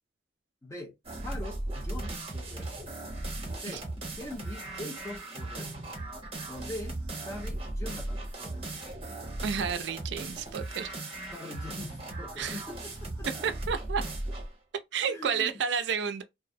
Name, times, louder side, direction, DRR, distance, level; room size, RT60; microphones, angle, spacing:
voice 1, 0.6-0.9 1.2-2.7 3.6-3.8 4.2-5.7 6.5-8.6 11.3-13.3 15.1-15.6, left 1 dB, 15° left, 0.8 m, -42 dB
sound 1, 1.0-14.5, right 2 dB, 35° right, 0.8 m, -37 dB
voice 2, 9.4-10.9 12.4-12.6 13.4-14.0 14.9-16.2, right 6 dB, 80° right, 0.3 m, -31 dB
2.3 x 2.0 x 2.6 m
head